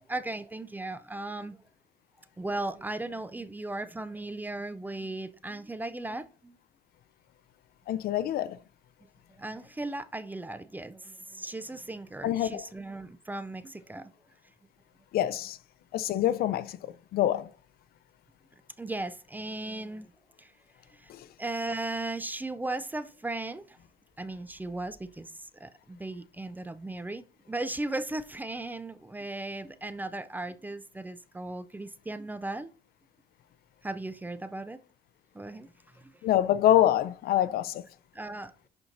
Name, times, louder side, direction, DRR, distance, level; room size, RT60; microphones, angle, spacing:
voice 1, 0.0-1.6 2.4-6.6 9.4-14.1 18.8-20.1 20.4-20.5 20.9-21.1 21.4-23.8 24.2-32.7 33.8-34.8 35.3-36.1 38.1-38.5, right 2 dB, 10° right, 0.4 m, -37 dB
voice 2, 7.9-8.6 12.2-12.6 15.1-15.6 15.9-16.8 17.1-17.5 36.2-37.8, left 12 dB, 65° left, 0.5 m, -25 dB
11.0 x 4.4 x 2.6 m
cardioid pair, 110°, 17 cm